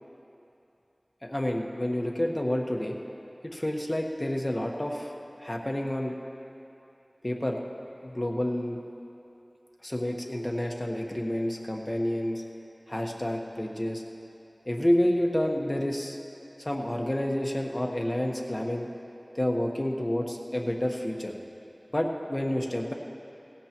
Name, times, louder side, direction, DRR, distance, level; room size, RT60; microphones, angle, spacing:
voice 1, 1.2-3.0 3.4-5.1 5.4-6.2 7.2-7.6 8.0-8.8 9.8-12.4 12.9-14.0 14.7-16.2 16.6-18.9 19.3-21.3 21.9-22.9, left 1 dB, 30° left, 1 dB, 1.3 m, -29 dB
18.5 x 16.0 x 3.0 m, 2.9 s
wide cardioid pair, 50°, 0 cm